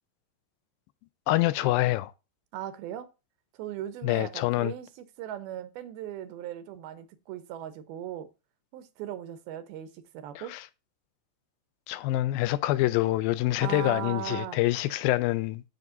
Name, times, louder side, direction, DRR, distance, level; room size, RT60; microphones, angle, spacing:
voice 1, 1.3-2.1 4.0-4.7 10.4-10.6 11.9-15.6, left 16 dB, 80° left, 2.3 m, -26 dB
voice 2, 2.5-3.1 3.5-4.9 5.2-8.3 8.7-10.6 13.6-14.6, right 11 dB, 90° right, 2.9 m, -38 dB
10.5 x 7.9 x 2.7 m
omnidirectional pair, 4.2 m